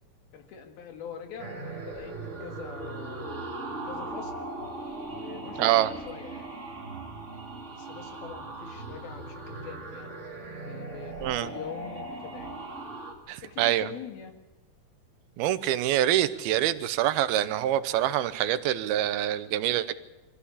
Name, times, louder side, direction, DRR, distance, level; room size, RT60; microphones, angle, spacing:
voice 1, 0.3-2.1 2.4-3.5 3.9-4.3 5.1-6.5 7.7-10.2 10.7-12.5 13.3-14.3, left 7 dB, 80° left, 6 dB, 3.9 m, -43 dB
sound 1, 1.4-13.1, right 2 dB, 20° right, 2.4 m, -39 dB
voice 2, 5.6-5.9 11.2-11.5 13.3-13.9 15.4-19.9, right 12 dB, 85° right, 14 dB, 2.8 m, -25 dB
23.5 x 15.0 x 8.5 m, 1.1 s
omnidirectional pair, 4.3 m